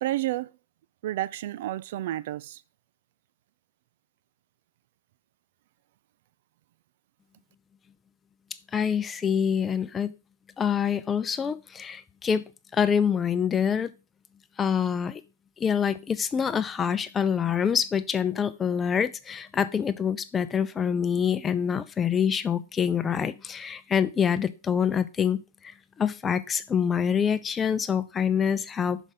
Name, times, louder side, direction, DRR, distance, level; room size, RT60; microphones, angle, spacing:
voice 1, 0.0-0.5 1.0-2.6, right 15 dB, 50° right, 0.4 m, -30 dB
voice 2, 8.7-10.1 10.6-12.4 12.7-13.9 14.6-15.2 15.6-29.0, left 7 dB, 15° left, 0.5 m, -26 dB
6.1 x 5.3 x 6.1 m
figure-of-eight pair, 105°, 0 cm